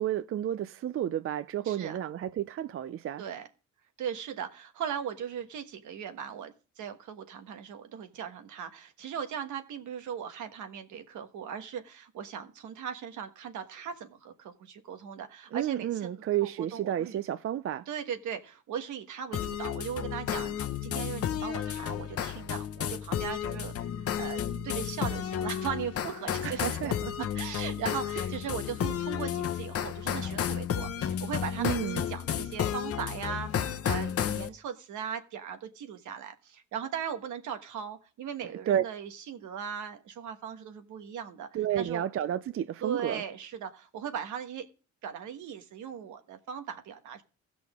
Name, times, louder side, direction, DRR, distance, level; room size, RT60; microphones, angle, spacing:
voice 1, 0.0-3.2 15.5-17.9 26.4-27.3 31.6-32.0 38.7-38.8 41.5-43.2, right 11 dB, 45° right, 0.5 m, -31 dB
voice 2, 1.6-2.0 3.2-3.5 4.0-16.1 16.4-17.2 17.9-41.5 41.8-42.1 42.8-44.7 45.0-47.2, right 8 dB, 75° right, 1.3 m, -38 dB
sound 1, 19.3-34.5, left 9 dB, 50° left, 0.8 m, -32 dB
16.0 x 6.1 x 3.5 m
cardioid pair, 90°, 30 cm